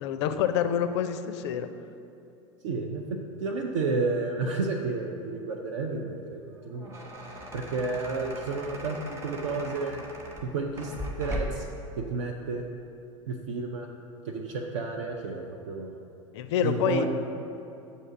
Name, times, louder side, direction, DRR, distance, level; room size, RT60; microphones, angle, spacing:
voice 1, 0.0-1.7 16.3-17.1, left 9 dB, 55° left, 9 dB, 0.4 m, -27 dB
voice 2, 2.6-3.0 3.4-6.9 7.5-10.0 10.4-10.9 11.2-11.7 12.0-12.6 13.3-13.9 14.2-16.0 16.6-17.1, right 3 dB, 65° right, 1 dB, 0.5 m, -31 dB
sound 1, 6.6-11.8, equal, 15° right, 0.9 m, -38 dB
7.1 x 2.8 x 5.7 m, 2.6 s
figure-of-eight pair, 85°, 17 cm